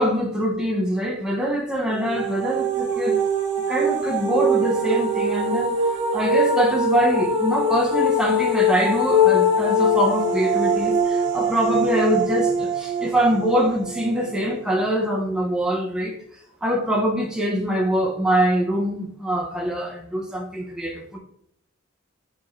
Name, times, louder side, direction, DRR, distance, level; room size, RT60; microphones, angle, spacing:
voice 1, 0.0-3.2 3.7-16.2 16.6-21.2, equal, 5° right, 0.5 m, -23 dB
sound 1, 1.9-14.7, equal, 55° right, 0.8 m, -22 dB
4.7 x 4.1 x 2.4 m
head